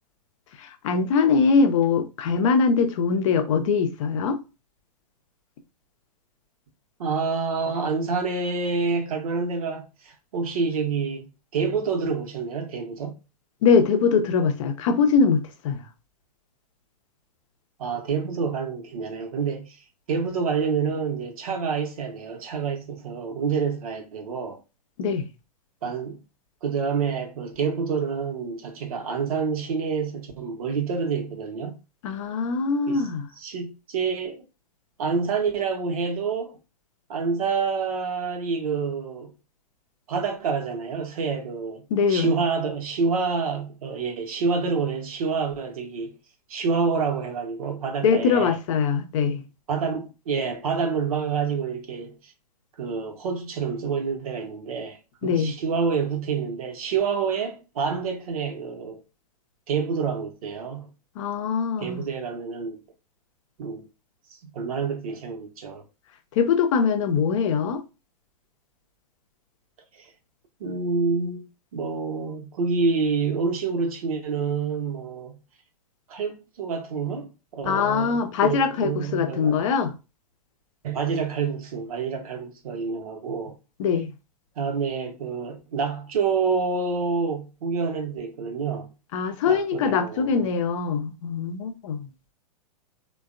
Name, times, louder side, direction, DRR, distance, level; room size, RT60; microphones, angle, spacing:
voice 1, 0.6-4.4 13.6-15.8 25.0-25.3 32.0-33.3 41.9-42.4 48.0-49.5 55.2-55.6 61.2-62.1 66.3-67.8 77.7-79.9 83.8-84.1 89.1-92.1, left 5 dB, 50° left, 0.6 m, -22 dB
voice 2, 7.0-13.2 17.8-19.8 20.1-24.6 25.8-26.2 26.6-31.8 32.9-33.1 33.4-34.4 35.0-36.6 37.1-39.3 40.1-46.1 46.5-48.5 49.7-52.3 52.8-59.0 59.7-60.9 61.8-62.8 63.6-63.8 64.5-65.8 69.9-70.1 70.6-71.5 71.7-75.4 76.1-79.7 80.8-83.6 84.6-88.9 89.5-90.3, right 5 dB, 60° right, 0.9 m, -28 dB
3.4 x 2.2 x 2.4 m
figure-of-eight pair, 105°, 21 cm